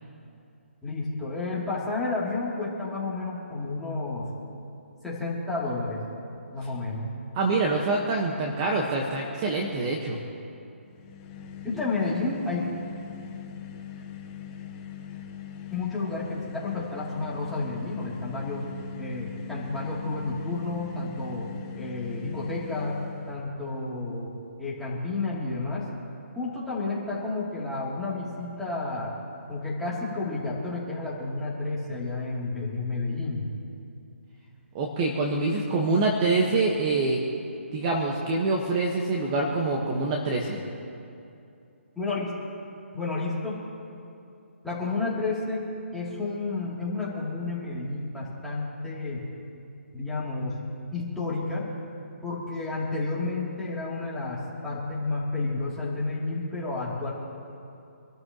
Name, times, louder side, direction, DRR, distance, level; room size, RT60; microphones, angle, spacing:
voice 1, 0.8-4.3 5.0-6.0 6.5-7.1 11.6-12.6 15.7-18.7 19.0-21.5 21.7-23.0 23.3-24.3 24.6-25.9 26.3-29.1 29.5-33.5 41.9-42.3 42.9-43.6 44.6-45.6 45.9-49.3 49.9-50.6 50.9-51.7 52.2-57.1, left 3 dB, ahead, -8 dB, 3.0 m, -31 dB
voice 2, 7.3-10.2 34.7-37.2 37.7-40.6, right 3 dB, 25° right, 0 dB, 1.4 m, -25 dB
sound 1, 10.9-23.5, left 9 dB, 20° left, 1.3 m, -41 dB
26.0 x 13.0 x 3.1 m, 2.6 s
hypercardioid pair, 160°, 7 cm